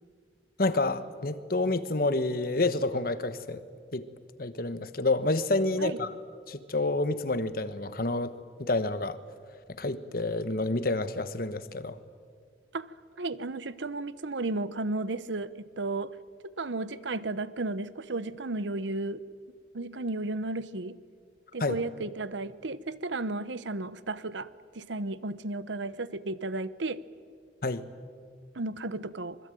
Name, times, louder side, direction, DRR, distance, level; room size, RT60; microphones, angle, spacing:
voice 1, 0.6-3.6 3.9-4.1 4.4-6.1 6.5-8.3 8.6-9.2 9.8-12.0 21.6-21.8 27.6-27.8, left 2 dB, 50° left, 12 dB, 1.2 m, -28 dB
voice 2, 12.7-16.2 16.4-19.2 19.7-21.0 21.5-24.5 24.7-27.0 28.5-29.4, right 2 dB, 80° right, 15 dB, 0.9 m, -34 dB
26.0 x 21.5 x 9.2 m, 2.1 s
head